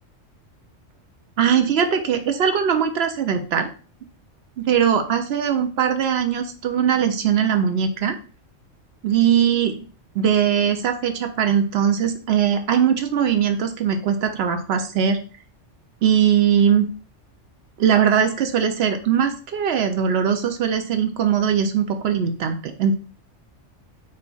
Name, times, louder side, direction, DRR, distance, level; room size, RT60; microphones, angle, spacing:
voice 1, 1.4-3.7 4.6-8.2 9.0-9.7 10.1-15.2 16.0-16.9 17.8-22.9, right 8 dB, 65° right, 6 dB, 0.7 m, -20 dB
4.3 x 3.8 x 2.3 m, 0.38 s
omnidirectional pair, 1.3 m